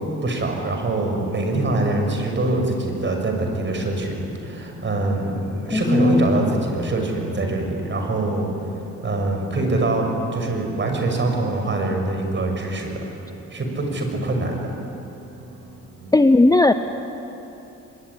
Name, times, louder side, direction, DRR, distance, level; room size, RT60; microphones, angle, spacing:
voice 1, 0.0-8.5 9.0-13.0 13.5-14.7, right 2 dB, 40° right, 3 dB, 6.4 m, -24 dB
sound 1, 0.9-16.2, equal, 75° right, 5.4 m, -41 dB
voice 2, 5.7-6.6 16.1-16.7, left 2 dB, 10° left, 9 dB, 0.9 m, -16 dB
24.5 x 22.5 x 9.9 m, 3.0 s
cardioid pair, 90°, 30 cm